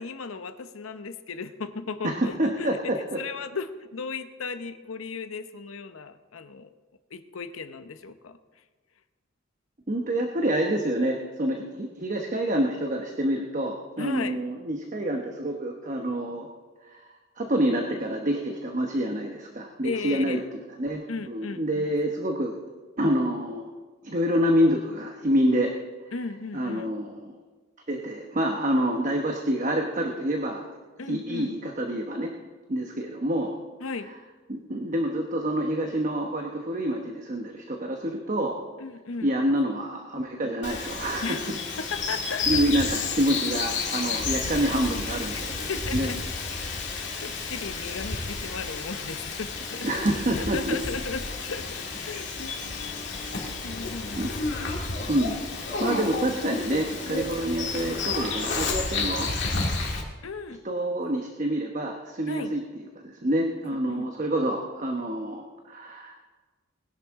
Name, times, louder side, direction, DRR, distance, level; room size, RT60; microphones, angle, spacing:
voice 1, 0.0-6.7 7.1-8.6 14.0-14.4 19.8-20.4 21.1-21.9 26.1-27.0 31.0-31.7 33.8-34.1 34.8-34.9 38.8-39.3 41.2-41.5 41.7-42.9 44.1-44.6 45.3-46.2 46.8-54.8 55.9-56.0 60.2-60.6 62.3-62.5 63.6-64.1, left 4 dB, 90° left, 10 dB, 0.8 m, -36 dB
voice 2, 2.0-3.2 9.9-16.5 16.8-17.0 17.4-20.4 20.8-22.6 23.0-23.7 24.0-25.7 26.5-27.4 27.9-30.6 31.1-32.3 32.7-33.5 34.5-38.6 39.2-41.4 42.5-46.1 49.8-50.8 54.2-54.3 55.1-55.4 55.8-59.3 60.6-66.1, right 1 dB, 40° right, 3 dB, 1.0 m, -27 dB
Bird vocalization bird call bird song, 40.6-60.0, left 4 dB, 60° left, 2.2 m, -31 dB
20.5 x 11.0 x 3.6 m, 1.3 s
head